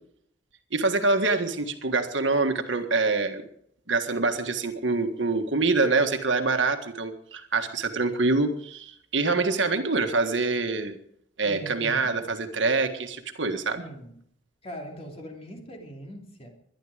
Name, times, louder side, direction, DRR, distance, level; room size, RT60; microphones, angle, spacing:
voice 1, 0.7-3.4 3.9-11.0 11.4-13.8, right 3 dB, 75° right, 6 dB, 1.6 m, -25 dB
voice 2, 11.4-12.2 13.8-14.1 14.6-16.5, equal, 30° left, 2 dB, 3.0 m, -41 dB
21.5 x 11.0 x 5.0 m, 0.69 s
head